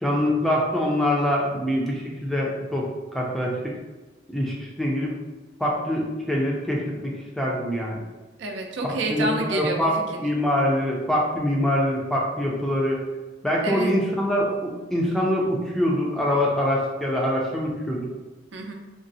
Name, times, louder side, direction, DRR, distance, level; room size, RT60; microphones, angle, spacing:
voice 1, 0.0-3.6 4.3-5.1 5.6-8.0 9.1-9.9 10.2-13.0 13.4-18.1, equal, ahead, -3 dB, 0.4 m, -24 dB
voice 2, 8.4-10.2 13.6-14.0 18.5-18.7, right 2 dB, 75° right, 2 dB, 0.4 m, -28 dB
3.7 x 2.0 x 2.6 m, 1.2 s
head